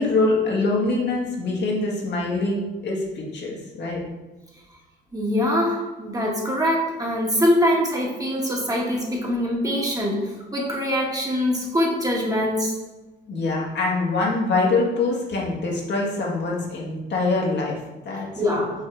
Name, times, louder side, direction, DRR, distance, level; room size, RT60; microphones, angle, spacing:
voice 1, 0.0-4.0 13.3-18.3, left 3 dB, 60° left, -3 dB, 1.7 m, -24 dB
voice 2, 5.1-12.7 18.4-18.7, left 1 dB, 20° right, -2 dB, 1.5 m, -23 dB
5.7 x 3.6 x 4.6 m, 1.1 s
cardioid pair, 90°, 20 cm